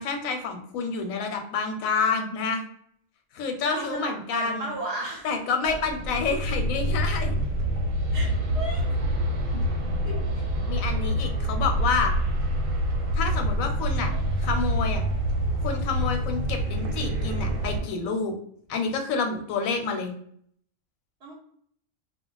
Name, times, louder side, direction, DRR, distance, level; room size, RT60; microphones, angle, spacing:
voice 1, 0.0-2.6 3.3-4.7 5.2-7.4 10.7-12.1 13.1-14.1 14.4-15.0 15.6-18.3 18.7-20.1, left 5 dB, 85° left, 4 dB, 1.0 m, -28 dB
voice 2, 3.6-5.3 8.1-8.8 10.0-10.2 21.2-21.3, right 2 dB, 55° right, -3 dB, 0.9 m, -34 dB
sound 1, 5.7-17.8, equal, 90° right, 1.1 m, -26 dB
2.4 x 2.0 x 3.8 m, 0.64 s
omnidirectional pair, 1.4 m